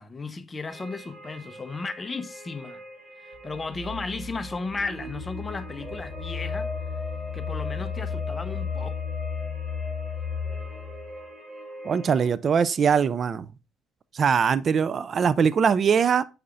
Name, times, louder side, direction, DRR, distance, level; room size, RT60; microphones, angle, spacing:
voice 1, 0.0-2.8 3.2-6.7 7.3-9.0, left 3 dB, 25° left, 0.7 m, -35 dB
sound 1, 0.7-12.3, equal, 20° right, 1.7 m, -41 dB
sound 2, 3.3-11.2, left 6 dB, 60° right, 3.4 m, -34 dB
voice 2, 11.8-13.5 14.1-16.2, right 6 dB, 45° right, 0.3 m, -22 dB
7.9 x 5.5 x 2.5 m
cardioid pair, 105°, 0 cm